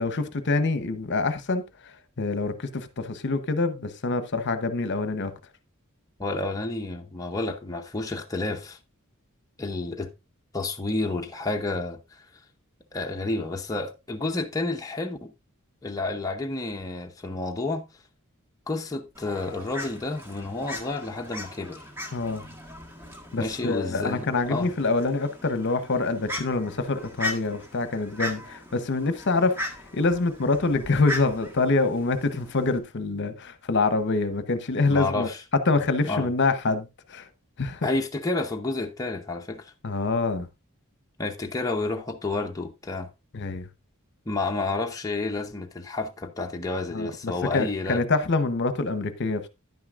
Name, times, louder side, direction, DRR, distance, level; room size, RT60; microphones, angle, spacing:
voice 1, 0.0-1.6 2.2-5.3 22.1-22.5 23.3-29.6 29.9-35.3 35.7-37.3 37.6-37.9 39.8-40.5 43.3-43.7 46.9-49.5, left 3 dB, 55° left, 0.9 m, -26 dB
voice 2, 6.2-8.8 9.6-10.1 10.5-12.2 12.9-15.3 15.8-17.8 18.7-21.8 23.4-24.7 34.9-35.4 36.1-36.3 37.8-39.7 41.2-43.1 44.3-48.0, left 2 dB, 15° left, 0.8 m, -30 dB
Fowl, 19.1-32.8, left 1 dB, 10° right, 1.5 m, -38 dB
10.5 x 9.4 x 2.5 m
head